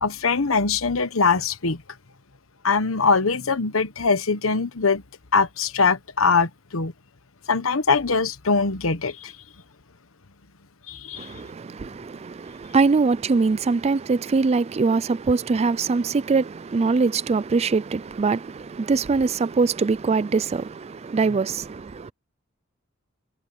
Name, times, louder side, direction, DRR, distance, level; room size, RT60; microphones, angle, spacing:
voice 1, 0.0-1.8 2.6-5.0 5.3-6.9 7.5-9.3 10.9-11.3, left 4 dB, 85° left, 1.2 m, -22 dB
voice 2, 11.2-22.1, right 4 dB, 30° right, 0.4 m, -23 dB
head